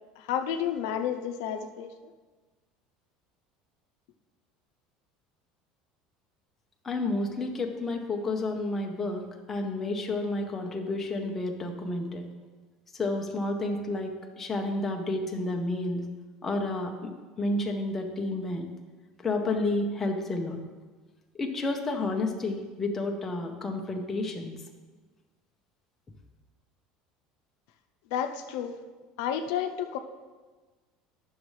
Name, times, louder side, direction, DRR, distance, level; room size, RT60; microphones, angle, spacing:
voice 1, 0.2-1.9 28.1-28.8 29.2-30.0, left 9 dB, 85° left, 7 dB, 0.6 m, -31 dB
voice 2, 6.8-12.3 12.9-16.0 16.4-17.1 17.4-18.7 19.2-20.6 21.3-24.5, left 2 dB, 15° left, 2 dB, 0.6 m, -30 dB
10.5 x 6.3 x 3.2 m, 1.4 s
cardioid pair, 175°, 2 cm